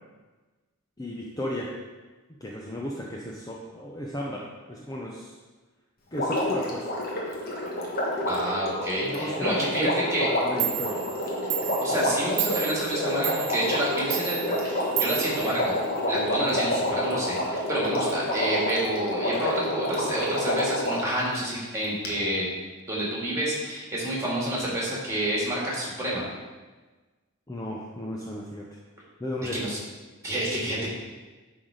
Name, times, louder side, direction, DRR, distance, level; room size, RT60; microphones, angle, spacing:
voice 1, 1.0-1.7 2.4-5.3 6.1-6.9 9.0-11.0 27.5-28.8 29.2-29.6, equal, 15° left, -3 dB, 0.6 m, -34 dB
Water, 6.1-21.1 22.0-22.1, left 1 dB, 40° left, 1.4 m, -28 dB
voice 2, 8.3-10.3 11.8-15.8 16.1-22.5 22.9-26.3 29.5-29.8 30.2-30.9, right 1 dB, 15° right, -4 dB, 2.1 m, -29 dB
Clock, 10.3-10.4 10.6-16.2, right 12 dB, 65° right, 0.7 m, -33 dB
10.0 x 4.0 x 5.0 m, 1.3 s
head